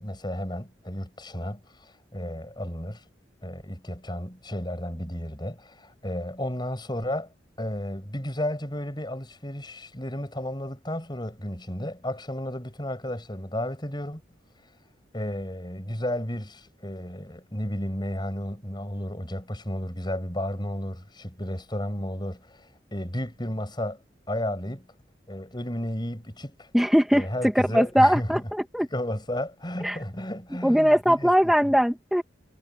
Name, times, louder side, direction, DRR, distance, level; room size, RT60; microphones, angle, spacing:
voice 1, 0.0-3.0 3.4-7.3 7.6-14.2 15.1-24.0 24.3-24.9 25.3-26.7 27.1-28.5 28.9-31.7, left 1 dB, 25° left, 8.0 m, -33 dB
voice 2, 26.7-27.3 27.7-28.9 29.8-30.0 30.6-32.2, equal, ahead, 2.1 m, -20 dB
head